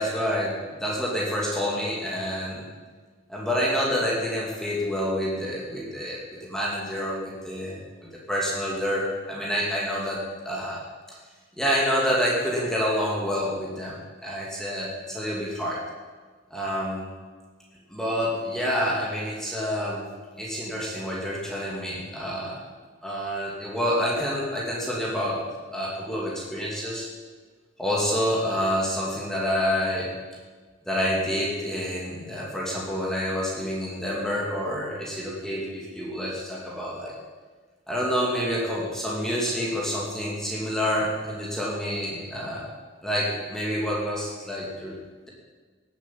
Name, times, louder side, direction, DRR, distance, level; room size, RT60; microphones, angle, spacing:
voice 1, 0.0-2.6 3.3-10.8 11.1-11.2 11.6-15.8 16.5-17.1 17.9-20.0 20.4-22.6 23.0-25.5 25.7-27.1 27.8-30.1 30.8-37.2 37.9-42.7 43.0-44.9, equal, ahead, -4 dB, 2.6 m, -28 dB
18.0 x 8.4 x 7.6 m, 1.5 s
head